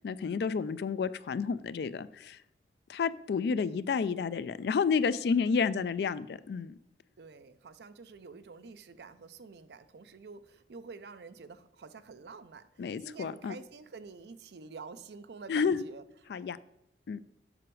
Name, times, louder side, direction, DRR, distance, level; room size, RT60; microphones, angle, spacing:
voice 1, 0.0-2.4 2.9-6.8 12.8-13.5 15.5-15.8 16.3-16.6 17.1-17.2, left 5 dB, 65° left, 16 dB, 0.3 m, -30 dB
voice 2, 7.2-16.0, right 4 dB, 70° right, 12 dB, 0.5 m, -48 dB
7.7 x 6.0 x 3.1 m, 0.85 s
head